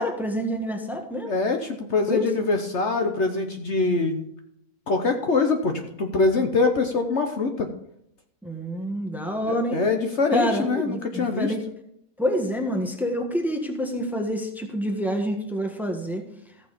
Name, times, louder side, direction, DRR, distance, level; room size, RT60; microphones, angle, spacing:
voice 1, 0.0-1.3 2.1-2.3 8.4-9.8 10.3-11.6 12.2-16.2, equal, ahead, 3 dB, 1.4 m, -27 dB
voice 2, 1.3-4.3 4.9-7.7 9.5-11.5, left 3 dB, 55° left, 4 dB, 1.2 m, -24 dB
14.5 x 6.7 x 5.1 m, 0.75 s
omnidirectional pair, 1.5 m